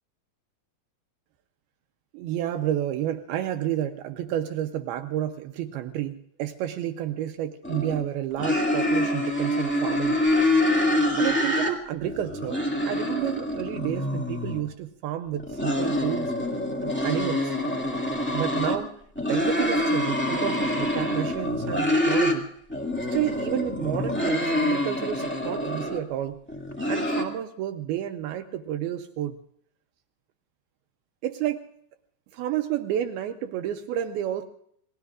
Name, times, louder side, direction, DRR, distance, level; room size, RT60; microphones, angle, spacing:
voice 1, 2.1-10.2 11.1-16.3 16.8-17.5 18.3-18.9 19.3-22.5 23.1-26.4 26.9-29.4 31.2-31.6 32.3-34.4, right 11 dB, 80° right, 6 dB, 2.6 m, -30 dB
sound 1, 7.6-8.0 8.4-11.7 12.0-14.6 15.3-18.8 19.1-22.4 22.7-26.0 26.5-27.2, left 1 dB, 10° left, 0.7 m, -26 dB
29.0 x 20.0 x 2.5 m, 0.66 s
omnidirectional pair, 4.6 m